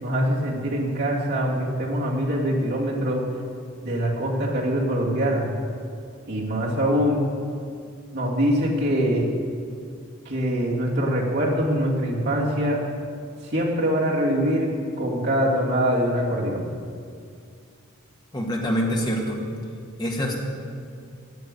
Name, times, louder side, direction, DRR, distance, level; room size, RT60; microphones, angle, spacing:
voice 1, 0.0-3.2 3.8-5.5 6.3-7.3 8.1-9.3 10.3-12.8 13.5-14.7 15.0-16.7, equal, 55° right, -4 dB, 2.4 m, -23 dB
voice 2, 18.3-19.4 20.0-20.4, equal, 20° left, -1 dB, 1.6 m, -25 dB
9.4 x 8.2 x 8.5 m, 2.3 s
head